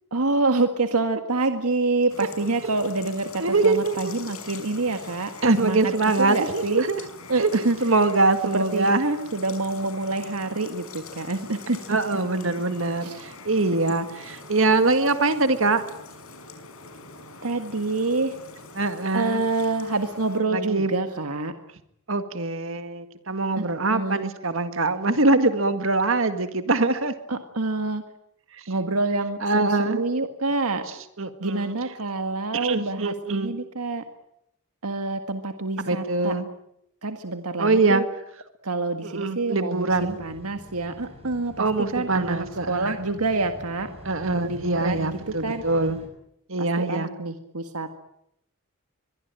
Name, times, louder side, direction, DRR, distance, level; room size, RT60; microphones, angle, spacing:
voice 1, 0.1-5.3 5.6-6.9 7.3-8.0 8.5-8.9 9.3-11.8 13.0-13.3 17.4-18.4 19.1-21.5 23.5-23.6 23.9-24.3 27.3-28.0 28.7-30.8 31.4-34.0 34.8-36.3 37.0-38.1 38.6-41.7 41.9-43.9 44.4-45.6 46.6-47.9, right 3 dB, 85° right, 7 dB, 1.8 m, -27 dB
sound 1, 2.1-20.4, left 4 dB, 70° left, 5.6 m, -44 dB
voice 2, 3.4-4.1 5.4-7.0 7.4-7.5 7.8-9.3 11.9-15.8 18.8-19.4 20.5-20.9 22.1-27.1 29.4-30.0 31.2-31.7 32.5-33.6 35.8-36.5 37.6-38.0 39.0-40.2 41.6-43.0 44.1-46.0 46.5-47.1, right 3 dB, 60° right, 9 dB, 1.9 m, -23 dB
sound 2, 39.9-46.1, equal, 25° right, 6.6 m, -44 dB
23.5 x 23.0 x 9.1 m, 0.77 s
head